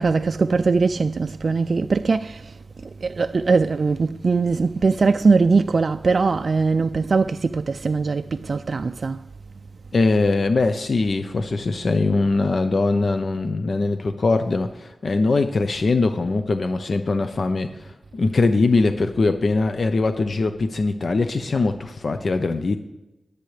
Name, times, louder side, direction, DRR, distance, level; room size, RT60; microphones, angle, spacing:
voice 1, 0.0-2.5 3.0-9.2, right 4 dB, 65° right, 0.3 m, -21 dB
voice 2, 9.9-22.8, left 3 dB, 65° left, 0.7 m, -21 dB
20.5 x 8.3 x 3.3 m
wide cardioid pair, 70°, 0 cm